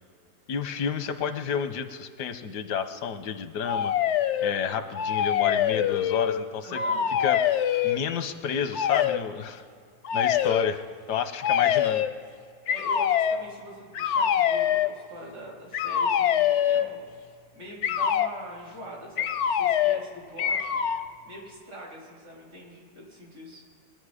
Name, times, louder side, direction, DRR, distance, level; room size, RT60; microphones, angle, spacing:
voice 1, 0.5-3.9 4.4-6.8 7.2-7.4 7.8-9.6 10.1-12.0, left 7 dB, 85° left, 10 dB, 1.4 m, -30 dB
sound 1, 3.6-4.5 4.9-6.4 6.7-8.0 8.7-9.2 10.0-10.7 11.4-12.1 12.7-13.4 13.9-14.9 15.7-16.9 17.8-18.3 19.2-20.0 20.4-21.0, left 9 dB, 70° left, 0.7 m, -24 dB
voice 2, 6.6-7.0 12.6-17.0 17.5-20.8 21.2-23.6, right 1 dB, 80° right, -4 dB, 4.5 m, -43 dB
23.0 x 9.4 x 4.9 m, 2.2 s
omnidirectional pair, 1.7 m